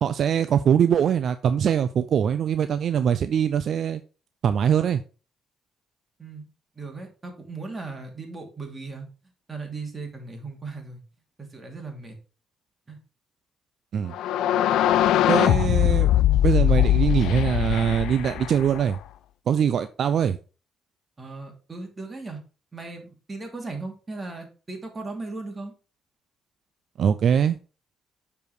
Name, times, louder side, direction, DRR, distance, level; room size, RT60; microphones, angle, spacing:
voice 1, 0.0-4.0 4.4-5.0 13.9-14.2 15.3-16.1 16.4-19.0 19.5-20.4 27.0-27.6, right 8 dB, 60° right, 11 dB, 0.4 m, -22 dB
voice 2, 6.8-9.1 9.5-11.0 11.4-12.2 12.9-13.0 21.2-22.4 22.7-25.7, right 3 dB, 25° right, 3 dB, 2.6 m, -37 dB
sound 1, 14.1-19.0, left 12 dB, 85° left, 0.4 m, -21 dB
7.1 x 4.7 x 4.8 m, 0.35 s
cardioid pair, 90°, 0 cm